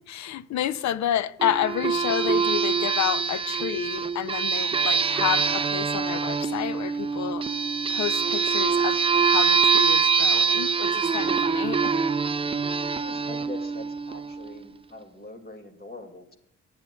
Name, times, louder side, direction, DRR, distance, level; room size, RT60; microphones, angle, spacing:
voice 1, 0.0-7.5 7.9-11.9, left 11 dB, 65° left, 0.6 m, -30 dB
sound 1, 1.4-14.6, right 5 dB, 20° right, 0.4 m, -24 dB
voice 2, 13.0-16.4, left 2 dB, 30° left, 2.2 m, -43 dB
23.0 x 9.6 x 2.3 m
cardioid pair, 90°, 30 cm